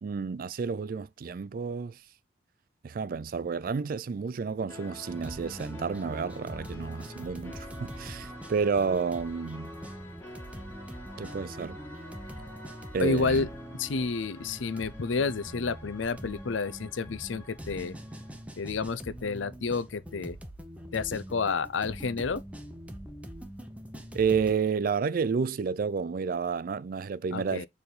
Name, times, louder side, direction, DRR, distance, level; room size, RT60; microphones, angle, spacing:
voice 1, 0.0-2.0 2.8-9.7 11.2-11.8 12.9-13.5 24.1-27.7, right 5 dB, 50° right, 0.3 m, -30 dB
sound 1, 4.7-18.4, left 1 dB, 10° left, 2.0 m, -48 dB
sound 2, 5.1-24.5, equal, 5° right, 0.8 m, -44 dB
voice 2, 13.0-13.5 13.7-18.0 18.6-20.4 20.9-22.4 27.3-27.7, left 4 dB, 85° left, 0.6 m, -30 dB
6.9 x 3.4 x 4.0 m
head